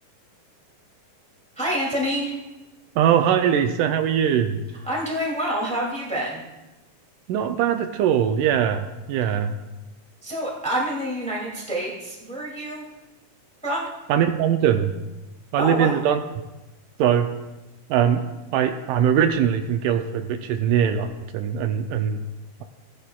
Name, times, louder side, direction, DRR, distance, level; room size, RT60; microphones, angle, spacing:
voice 1, 1.6-2.3 4.8-6.4 10.2-12.9 13.6-13.9 15.6-16.0, equal, 5° left, -4 dB, 1.7 m, -27 dB
voice 2, 3.0-4.6 7.3-9.6 14.1-14.9 15.5-16.2 17.0-17.3 17.9-18.2 18.5-22.2, right 9 dB, 85° right, 8 dB, 2.1 m, -21 dB
16.0 x 9.9 x 2.3 m, 1.0 s
omnidirectional pair, 3.7 m